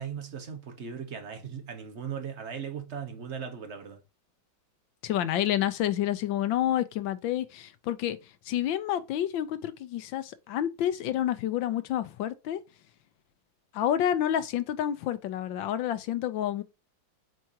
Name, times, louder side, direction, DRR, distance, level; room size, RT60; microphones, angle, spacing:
voice 1, 0.0-4.0, right 7 dB, 40° right, 1.3 m, -38 dB
voice 2, 5.0-8.2 8.5-12.6 13.7-16.6, left 11 dB, 80° left, 1.4 m, -29 dB
7.7 x 4.6 x 2.8 m
omnidirectional pair, 2.1 m